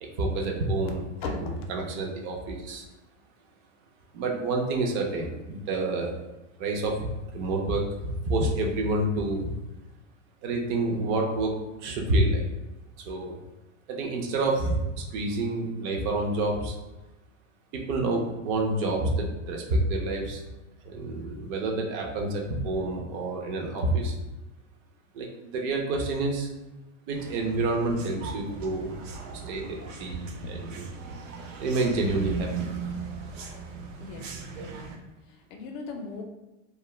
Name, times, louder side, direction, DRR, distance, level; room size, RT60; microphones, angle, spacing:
voice 1, 0.0-2.8 4.1-6.1 6.6-7.1 7.3-9.5 10.4-11.5 11.8-12.4 13.1-13.3 13.9-14.8 15.1-16.7 17.7-20.4 20.8-24.1 25.1-26.5 27.1-28.9 29.4-30.8 31.6-32.7, right 2 dB, 35° right, 1 dB, 0.4 m, -28 dB
voice 2, 1.2-1.6 14.2-14.4 34.0-34.9 35.3-36.2, left 4 dB, 40° left, 3 dB, 0.4 m, -38 dB
sound 1, 27.1-35.0, right 5 dB, 85° right, 0.6 m, -38 dB
2.1 x 2.0 x 3.0 m, 1.0 s
supercardioid pair, 145°, 38 cm